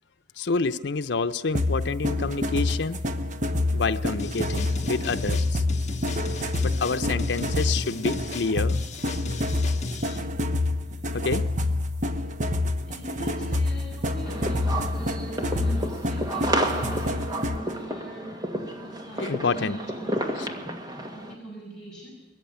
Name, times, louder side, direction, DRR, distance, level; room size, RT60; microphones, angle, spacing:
voice 1, 0.4-3.0 3.7-5.6 6.6-8.8 9.1-9.2 11.1-11.5 19.2-19.8 20.4-20.5, left 4 dB, 85° left, 8 dB, 0.7 m, -28 dB
sound 1, 1.5-17.7, left 2 dB, 45° right, 1.2 m, -27 dB
sound 2, 4.2-10.2, left 3 dB, 40° left, 1.6 m, -37 dB
voice 2, 12.8-22.1, right 1 dB, 5° left, -6 dB, 6.7 m, -41 dB
sound 3, 14.3-21.3, right 1 dB, 25° right, 1.8 m, -31 dB
21.5 x 14.5 x 9.3 m, 1.1 s
head